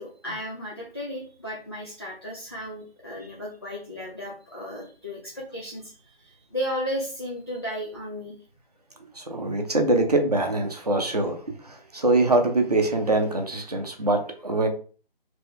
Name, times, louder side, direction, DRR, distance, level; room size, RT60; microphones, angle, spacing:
voice 1, 0.0-8.3, equal, 25° left, -5 dB, 0.5 m, -34 dB
voice 2, 9.1-14.7, right 2 dB, 40° right, 4 dB, 0.7 m, -23 dB
3.2 x 2.9 x 3.5 m, 0.40 s
figure-of-eight pair, 160°, 30 cm